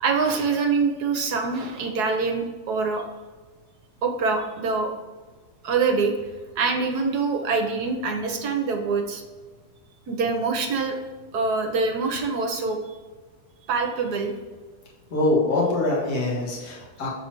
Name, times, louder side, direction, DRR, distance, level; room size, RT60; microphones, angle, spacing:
voice 1, 0.0-3.0 4.0-4.9 5.6-6.2 6.6-9.2 10.1-11.0 11.3-12.8 13.7-14.3, right 4 dB, 60° right, 4 dB, 1.2 m, -24 dB
voice 2, 15.1-17.1, left 2 dB, 50° left, -4 dB, 2.0 m, -24 dB
7.4 x 4.0 x 4.5 m, 1.4 s
omnidirectional pair, 2.2 m